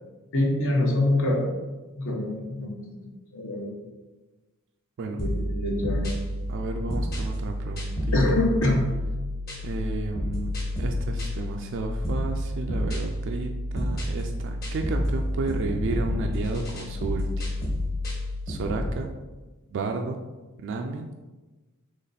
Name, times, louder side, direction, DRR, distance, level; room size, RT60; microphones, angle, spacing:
voice 1, 0.3-1.5 2.0-3.1 3.3-3.8 5.1-6.1 8.1-8.8, left 2 dB, 60° left, -1 dB, 1.0 m, -25 dB
sound 1, 5.2-18.9, left 1 dB, 45° left, 1.4 m, -29 dB
voice 2, 6.5-8.5 9.6-17.3 18.5-19.1 19.7-20.2 20.6-21.2, right 3 dB, 55° right, 4 dB, 0.3 m, -32 dB
4.1 x 3.0 x 4.0 m, 1.2 s
head